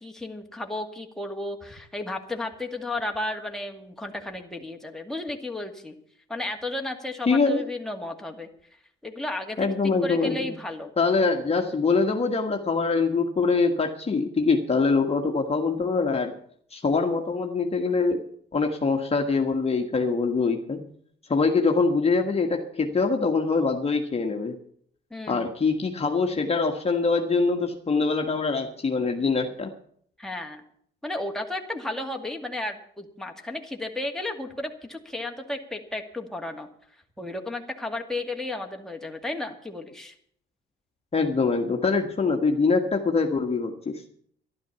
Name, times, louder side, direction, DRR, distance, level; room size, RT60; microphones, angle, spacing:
voice 1, 0.0-5.9 6.3-8.5 9.0-9.7 10.0-10.9 25.1-25.5 30.2-30.6 31.0-36.7 37.2-40.2, left 2 dB, ahead, 2 dB, 2.2 m, -33 dB
voice 2, 7.3-7.6 9.6-10.5 11.0-16.3 16.7-20.9 21.3-24.5 25.3-29.7 41.1-44.0, left 4 dB, 30° left, 3 dB, 1.6 m, -24 dB
12.0 x 12.0 x 7.0 m, 0.62 s
cardioid pair, 90°, 20 cm